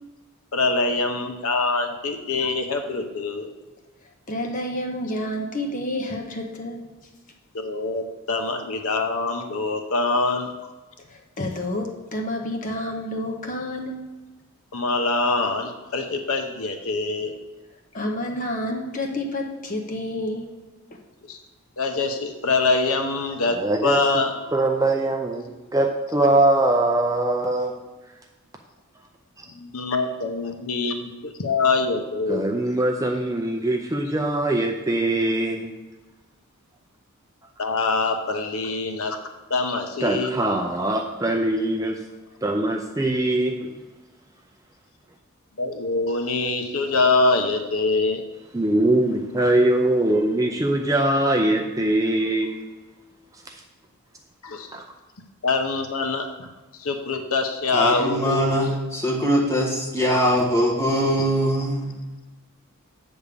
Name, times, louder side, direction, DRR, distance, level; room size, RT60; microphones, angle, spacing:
voice 1, 0.5-3.5 7.5-10.5 14.7-17.3 21.3-21.4 21.8-24.3 29.5-32.5 37.6-39.2 39.5-40.3 45.6-48.3 54.4-54.7 55.4-56.5 56.8-58.8, left 3 dB, 70° left, 5 dB, 0.8 m, -24 dB
voice 2, 4.3-6.8 11.1-14.0 17.9-20.5 20.9-21.0, left 1 dB, 35° left, 2 dB, 0.9 m, -29 dB
voice 3, 23.5-24.0 24.5-27.9 29.4-29.5 32.3-35.7 40.0-42.0 42.4-43.7 48.5-52.6 53.5-53.6 54.7-54.8, right 1 dB, 15° right, 3 dB, 0.4 m, -22 dB
voice 4, 57.7-61.9, equal, 15° left, -4 dB, 1.5 m, -22 dB
8.2 x 3.6 x 6.7 m, 1.2 s
head